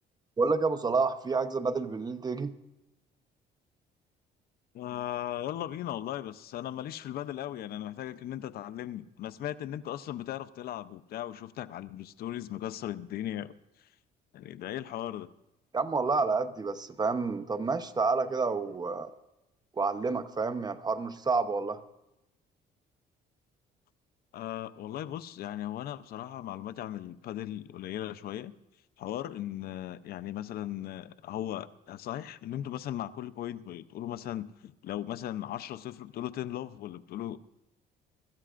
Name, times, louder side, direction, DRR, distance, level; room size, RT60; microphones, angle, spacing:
voice 1, 0.4-2.5 15.7-19.1 19.8-21.8, right 4 dB, 25° right, 10 dB, 0.9 m, -29 dB
voice 2, 4.7-13.9 14.3-15.3 24.3-28.5 29.0-37.4, left 12 dB, 65° left, 14 dB, 0.6 m, -37 dB
24.0 x 14.0 x 2.5 m, 0.94 s
cardioid pair, 110°, 17 cm